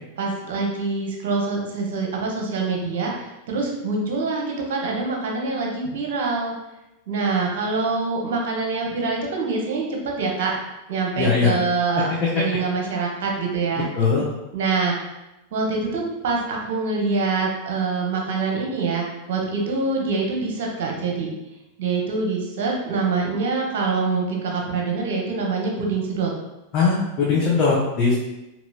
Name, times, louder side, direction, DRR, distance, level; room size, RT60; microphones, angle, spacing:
voice 1, 0.2-6.5 7.1-10.5 10.9-12.1 12.4-13.9 14.5-14.9 15.5-21.3 21.8-26.3, right 4 dB, 55° right, 0 dB, 0.7 m, -25 dB
voice 2, 11.2-11.5 12.0-12.4 13.9-14.2 26.7-28.2, left 4 dB, 35° left, -5 dB, 0.7 m, -20 dB
4.0 x 2.9 x 2.3 m, 0.97 s
figure-of-eight pair, 90°, 0 cm